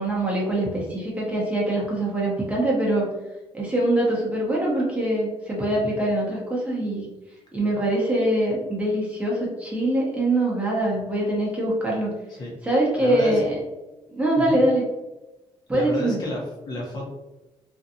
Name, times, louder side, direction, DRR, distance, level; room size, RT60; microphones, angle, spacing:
voice 1, 0.0-3.1 3.5-7.1 7.5-12.1 12.6-13.6 14.1-14.9 15.7-16.2, right 1 dB, 15° right, -5 dB, 0.8 m, -23 dB
voice 2, 13.0-13.4 14.3-14.6 15.7-17.1, left 1 dB, 40° left, -3 dB, 0.9 m, -31 dB
2.5 x 2.3 x 2.7 m, 1.0 s
cardioid pair, 105°, 11 cm